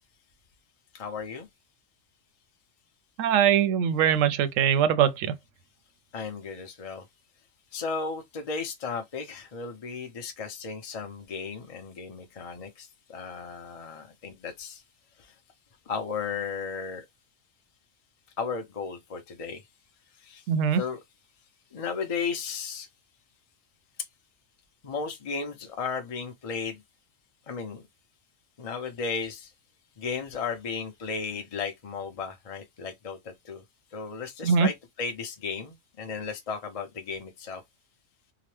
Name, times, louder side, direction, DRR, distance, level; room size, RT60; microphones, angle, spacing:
voice 1, 0.9-1.5 6.1-7.0 7.7-14.8 15.9-17.0 18.4-19.6 20.2-20.4 20.8-21.0 21.7-22.9 24.8-26.8 27.5-27.8 28.6-29.5 30.0-33.6 33.9-37.6, left 5 dB, 40° left, 0.6 m, -35 dB
voice 2, 3.2-5.3 20.5-20.8 34.4-34.7, right 8 dB, 90° right, 1.0 m, -22 dB
2.9 x 2.1 x 3.1 m
omnidirectional pair, 1.3 m